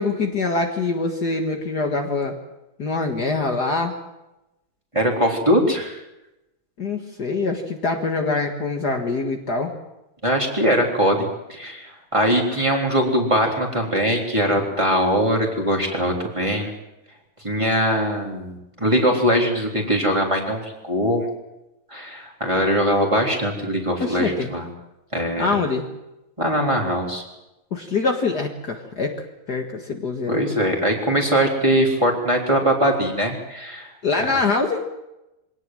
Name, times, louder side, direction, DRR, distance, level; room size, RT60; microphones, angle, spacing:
voice 1, 0.0-2.3 2.8-3.9 6.8-9.7 24.0-24.5 25.4-25.9 27.7-29.1 29.5-30.4 34.0-34.8, left 3 dB, 50° left, 3 dB, 2.2 m, -24 dB
voice 2, 4.9-6.0 10.2-16.7 17.4-21.3 21.9-24.7 25.1-25.5 26.4-27.2 30.3-33.9 34.3-34.4, equal, 15° right, 0 dB, 3.8 m, -21 dB
24.5 x 18.0 x 7.7 m, 0.95 s
omnidirectional pair, 2.4 m